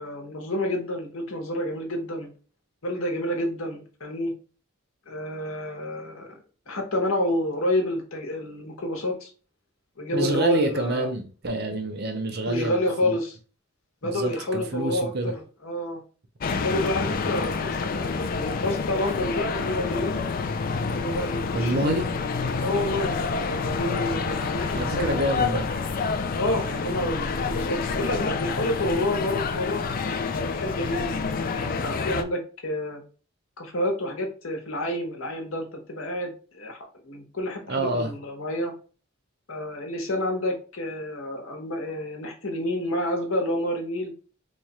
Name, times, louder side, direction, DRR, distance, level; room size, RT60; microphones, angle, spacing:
voice 1, 0.0-2.3 2.8-4.3 5.1-6.4 6.7-9.3 10.0-11.1 12.5-13.4 14.0-16.0 16.6-20.2 20.9-22.0 22.6-25.2 26.3-29.8 30.3-33.0 33.6-36.8 37.0-38.7 39.5-44.1, left 1 dB, 75° left, 1.1 m, -29 dB
voice 2, 10.1-12.8 13.0-13.1 14.0-15.3 21.5-22.1 24.7-25.7 37.7-38.1, right 1 dB, 50° right, 0.7 m, -27 dB
sound 1, 16.4-32.2, left 4 dB, 45° left, 0.4 m, -28 dB
3.2 x 2.4 x 4.2 m
head